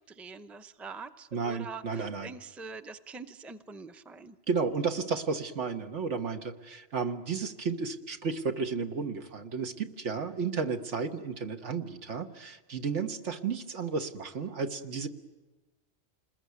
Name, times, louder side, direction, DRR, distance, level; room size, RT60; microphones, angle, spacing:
voice 1, 0.0-4.4, right 4 dB, ahead, 9 dB, 0.6 m, -44 dB
voice 2, 1.3-2.3 4.5-15.1, right 5 dB, 75° right, 6 dB, 1.7 m, -33 dB
28.0 x 20.5 x 9.5 m, 1.2 s
omnidirectional pair, 1.2 m